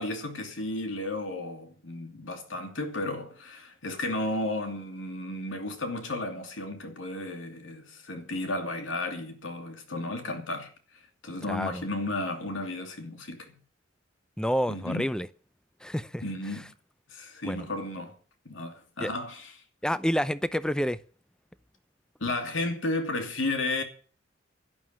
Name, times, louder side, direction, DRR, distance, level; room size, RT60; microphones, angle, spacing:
voice 1, 0.0-10.7 11.2-13.6 14.7-15.1 16.2-16.7 17.1-18.2 18.4-19.5 22.2-23.8, left 2 dB, 80° left, 2.8 m, -33 dB
voice 2, 11.5-11.8 14.4-15.3 15.8-16.2 17.4-17.7 19.0-19.1 19.8-21.0, equal, 5° left, 0.6 m, -28 dB
11.5 x 11.5 x 7.7 m
head